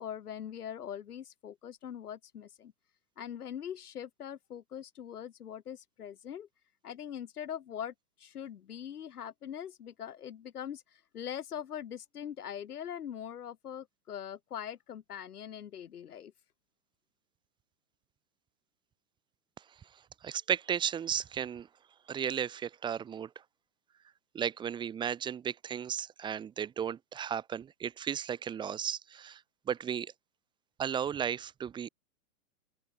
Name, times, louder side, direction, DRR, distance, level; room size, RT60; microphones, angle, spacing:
voice 1, 0.0-2.7 3.2-6.5 6.8-16.3, left 9 dB, 80° left, 4.7 m, -42 dB
voice 2, 20.2-21.7 22.1-23.3 24.3-29.4 29.7-30.1 30.8-31.9, right 8 dB, 10° right, 1.0 m, -34 dB
open air
hypercardioid pair, 150°, 45 cm